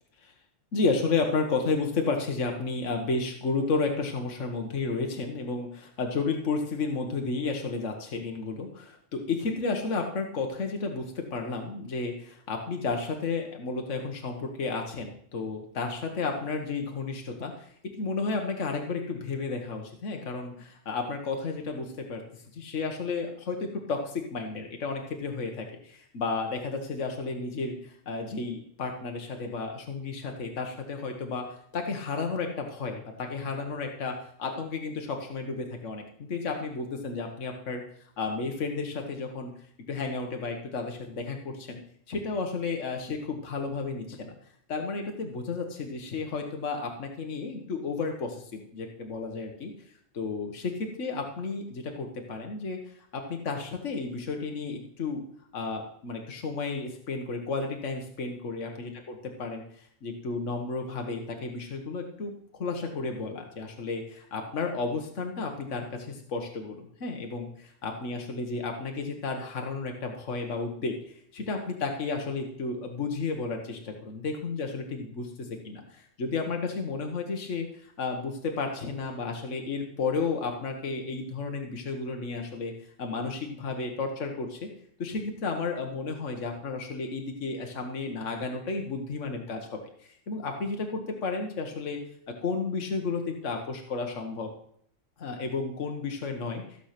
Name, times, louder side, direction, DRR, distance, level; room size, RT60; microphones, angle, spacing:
voice 1, 0.7-22.2 22.5-37.8 38.2-39.5 39.9-41.8 42.1-44.3 44.7-49.7 50.1-55.2 55.5-58.9 59.4-82.7 83.0-84.6 85.0-92.0 92.4-94.5 95.2-96.9, left 4 dB, 65° left, 3 dB, 1.7 m, -32 dB
15.0 x 7.2 x 5.9 m, 0.64 s
omnidirectional pair, 1.4 m